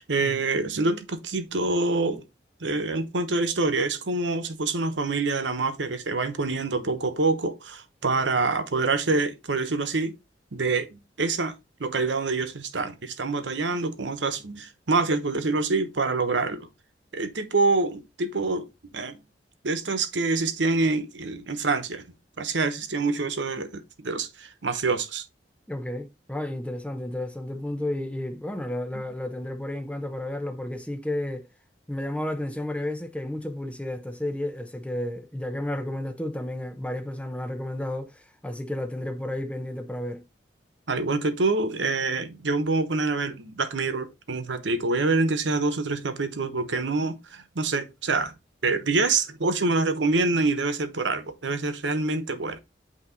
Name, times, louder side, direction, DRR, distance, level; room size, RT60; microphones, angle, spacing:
voice 1, 0.0-2.2 2.6-10.1 10.5-11.5 11.8-16.7 17.1-19.2 19.6-22.0 22.4-25.2 28.9-29.0 40.9-48.3 48.6-52.6, right 3 dB, 85° right, 1.0 m, -26 dB
voice 2, 25.7-31.4 31.9-40.2, left 1 dB, 5° left, 0.8 m, -32 dB
8.6 x 2.9 x 3.9 m
head